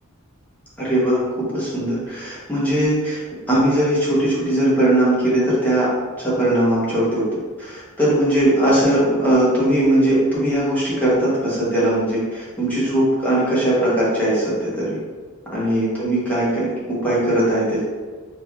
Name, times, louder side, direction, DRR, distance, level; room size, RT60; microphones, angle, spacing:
voice 1, 0.8-1.2 1.5-3.2 3.5-5.9 6.2-15.0 15.5-17.8, right 1 dB, 10° left, -8 dB, 0.8 m, -19 dB
3.2 x 2.3 x 2.3 m, 1.5 s
head